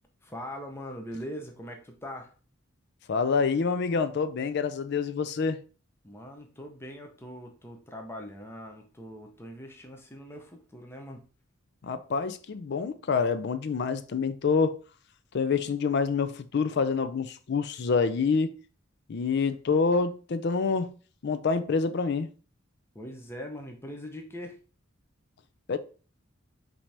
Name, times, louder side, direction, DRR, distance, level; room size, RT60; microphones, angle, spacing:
voice 1, 0.2-2.3 6.0-11.2 22.9-24.6, equal, 10° left, 0.6 m, -41 dB
voice 2, 3.1-5.6 11.8-14.8 15.3-18.5 19.1-20.9 21.2-22.3 25.7-25.8, left 5 dB, 55° left, 0.4 m, -27 dB
5.9 x 2.7 x 3.3 m
head